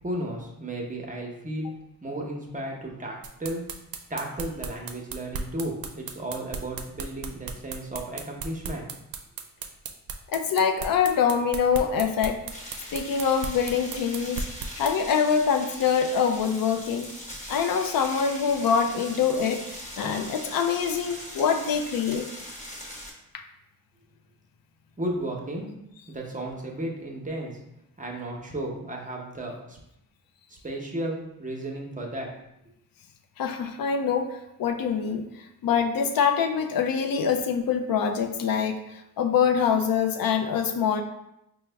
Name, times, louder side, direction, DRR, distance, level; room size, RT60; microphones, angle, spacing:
voice 1, 0.0-3.6 4.1-8.9 25.0-25.7 26.1-27.6 28.0-29.8 30.5-32.3, right 1 dB, 25° right, 0 dB, 0.7 m, -34 dB
sound 1, 3.2-14.9, right 4 dB, 75° right, 0.5 m, -35 dB
voice 2, 10.3-12.4 12.9-14.5 14.8-17.1 17.5-22.3 23.3-23.4 33.4-35.2 35.6-41.0, left 7 dB, 75° left, 6 dB, 0.5 m, -25 dB
sound 2, 12.5-23.1, equal, 20° left, 1.0 m, -41 dB
4.7 x 2.1 x 3.3 m, 0.84 s
cardioid pair, 95°, 35 cm